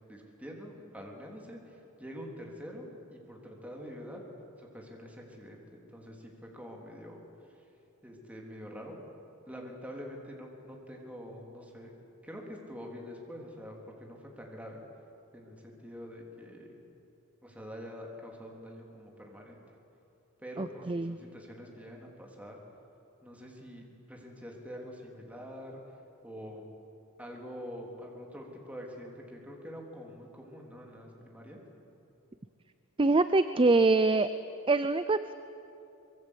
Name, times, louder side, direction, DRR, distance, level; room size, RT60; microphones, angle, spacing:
voice 1, 0.1-4.2 4.6-7.2 8.0-9.0 9.5-11.9 12.2-14.8 15.3-16.8 17.4-19.6 20.4-22.6 23.2-25.8 26.2-26.7 27.2-31.6, equal, 5° right, -1 dB, 3.7 m, -45 dB
voice 2, 20.6-21.2 33.0-34.3 34.7-35.3, right 3 dB, 25° right, 12 dB, 0.6 m, -24 dB
24.5 x 23.5 x 8.4 m, 2.7 s
head